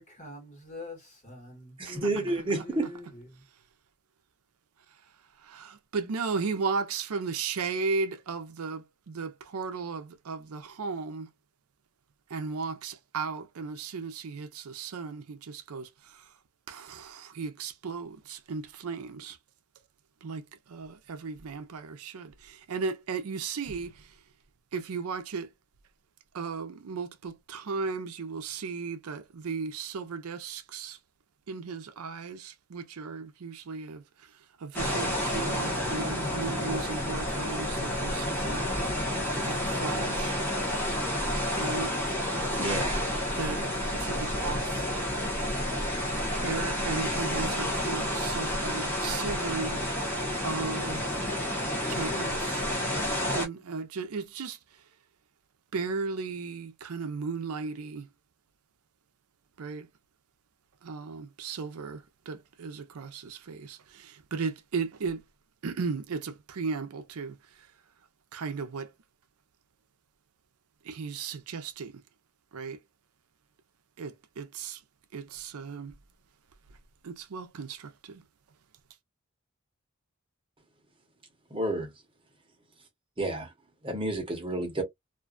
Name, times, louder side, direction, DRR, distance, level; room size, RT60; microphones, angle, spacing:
voice 1, 0.0-3.4, left 1 dB, 30° left, 1.3 m, -45 dB
voice 2, 1.8-2.9 42.6-43.1 43.6-43.7 81.5-81.9 83.2-83.5 83.8-84.8, right 2 dB, 25° right, 0.9 m, -30 dB
voice 3, 5.4-11.3 12.3-16.3 16.7-19.4 20.2-24.1 24.7-25.5 26.3-31.0 31.5-38.6 39.4-40.4 41.6-41.9 43.4-43.6 43.9-44.9 46.3-49.8 50.4-51.0 51.9-52.6 53.3-54.8 55.7-58.1 59.6-59.9 60.8-65.2 65.6-67.7 68.3-68.9 70.8-72.0 72.5-72.8 74.0-74.8 75.1-76.0 77.0-78.2, right 4 dB, 80° right, 0.5 m, -36 dB
sound 1, 34.7-53.5, left 1 dB, 10° left, 0.8 m, -30 dB
2.5 x 2.2 x 2.3 m
head